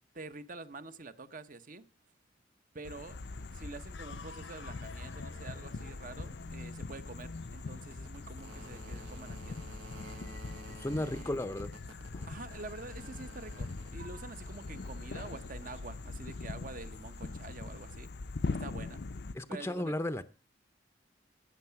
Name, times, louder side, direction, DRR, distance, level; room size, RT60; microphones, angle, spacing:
voice 1, 0.1-1.8 2.7-3.2 3.5-9.7 11.0-11.4 12.3-18.1 18.5-19.0 19.5-19.9, right 3 dB, 45° right, 0.9 m, -47 dB
sound 1, 2.8-19.3, left 3 dB, 55° left, 0.6 m, -42 dB
sound 2, 3.1-17.9, right 2 dB, 80° right, 1.6 m, -55 dB
sound 3, 3.9-10.3, left 3 dB, 75° left, 0.9 m, -50 dB
voice 2, 10.8-11.7 12.1-12.2 19.3-20.2, left 1 dB, 15° left, 0.6 m, -34 dB
15.5 x 7.3 x 5.8 m
head